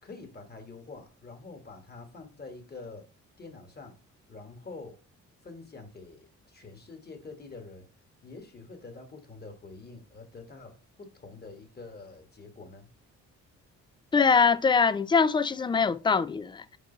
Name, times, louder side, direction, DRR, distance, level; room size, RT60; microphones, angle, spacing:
voice 1, 0.0-3.1 3.4-4.0 4.3-5.0 5.4-7.9 8.2-12.9, left 3 dB, 30° left, 1.8 m, -46 dB
voice 2, 14.1-16.8, left 5 dB, 15° left, 0.3 m, -23 dB
5.3 x 4.5 x 4.0 m
cardioid pair, 90°, 30 cm